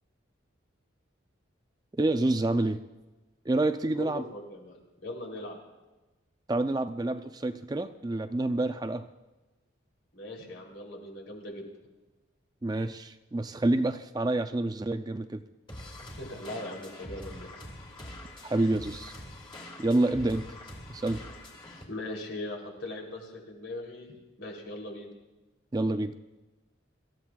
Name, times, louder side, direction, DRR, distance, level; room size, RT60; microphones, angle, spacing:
voice 1, 2.0-2.8 3.5-4.2 6.5-9.1 12.6-15.4 18.4-19.1 19.8-20.5 20.9-21.2 25.7-26.1, right 2 dB, 20° right, 9 dB, 0.4 m, -28 dB
voice 2, 4.0-5.6 10.1-11.7 16.0-17.5 21.9-25.1, left 1 dB, 70° left, -1 dB, 3.2 m, -40 dB
sound 1, 15.7-21.8, left 1 dB, 25° left, 2.2 m, -44 dB
25.0 x 14.5 x 2.3 m, 1.1 s
head